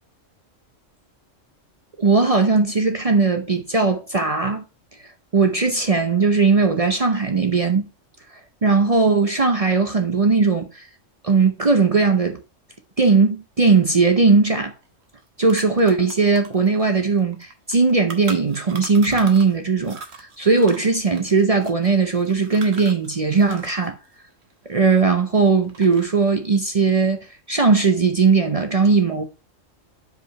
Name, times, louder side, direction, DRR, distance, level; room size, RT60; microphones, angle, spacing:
voice 1, 2.0-4.6 5.3-7.8 8.6-10.9 11.2-12.4 13.0-14.7 15.4-24.0 24.7-27.2 27.5-29.2, right 4 dB, 35° right, 0.6 m, -18 dB
sound 1, 14.8-14.9 15.2-19.6 19.8-23.9 24.1-25.3 25.6-26.3, right 4 dB, 60° right, 1.4 m, -40 dB
5.3 x 4.9 x 5.2 m
omnidirectional pair, 1.3 m